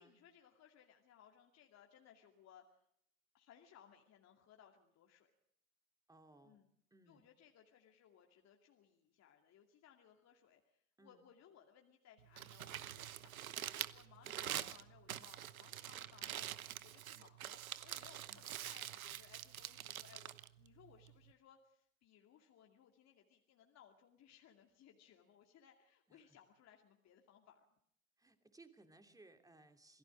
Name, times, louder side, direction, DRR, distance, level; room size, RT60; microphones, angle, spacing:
voice 1, 0.0-2.8 3.3-5.3 6.4-6.7 7.1-16.5 16.8-27.8, left 9 dB, 40° left, 2 dB, 2.5 m, -65 dB
voice 2, 6.1-6.6 6.9-7.3 11.0-11.3 18.3-18.5 26.1-26.4 28.2-30.0, right 2 dB, 10° right, 7 dB, 2.8 m, -64 dB
Crumpling crinkling, 12.2-21.3, right 11 dB, 85° right, 1.0 m, -46 dB
27.0 x 17.5 x 6.2 m, 0.72 s
hypercardioid pair, 90°, 42 cm